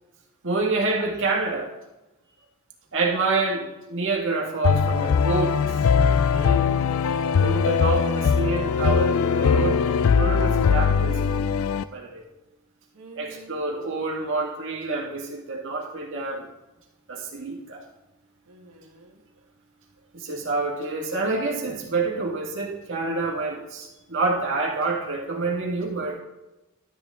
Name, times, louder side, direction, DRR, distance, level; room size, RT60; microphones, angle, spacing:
voice 1, 0.4-1.7 2.9-5.7 6.0-6.7 7.4-11.5 11.9-12.2 13.2-16.5 17.1-17.8 20.1-26.2, right 3 dB, 60° right, -1 dB, 1.9 m, -27 dB
sound 1, 4.6-11.8, left 6 dB, 65° left, 0.4 m, -21 dB
voice 2, 12.9-13.7 18.4-19.5 20.0-20.1, right 3 dB, 75° right, 1 dB, 1.5 m, -50 dB
12.0 x 8.4 x 3.7 m, 0.99 s
head